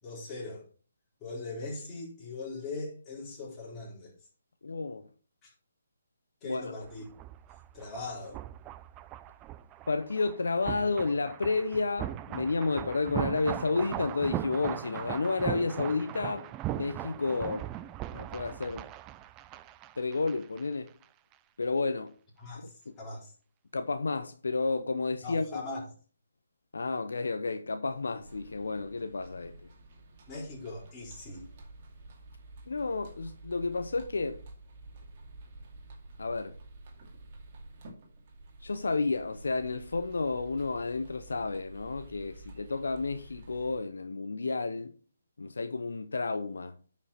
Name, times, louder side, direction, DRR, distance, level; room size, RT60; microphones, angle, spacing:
voice 1, 0.0-0.6 1.2-4.1 5.4-5.5 6.4-7.0 7.7-8.4 22.4-23.3 25.2-25.9 30.3-31.5, left 3 dB, 20° left, 4.0 m, -40 dB
voice 2, 4.6-5.1 6.4-6.7 9.9-16.5 16.8-17.7 18.1-18.9 20.0-20.9 21.6-22.1 22.9-23.0 23.7-25.6 26.7-29.5 32.7-34.4 36.2-36.6 38.6-44.9 45.4-46.8, left 3 dB, 75° left, 0.7 m, -31 dB
sound 1, 6.8-20.6 20.9-21.0, right 13 dB, 20° right, 0.4 m, -39 dB
sound 2, 28.2-43.8, right 2 dB, 40° right, 2.3 m, -50 dB
9.8 x 5.4 x 4.3 m
figure-of-eight pair, 145°, 0 cm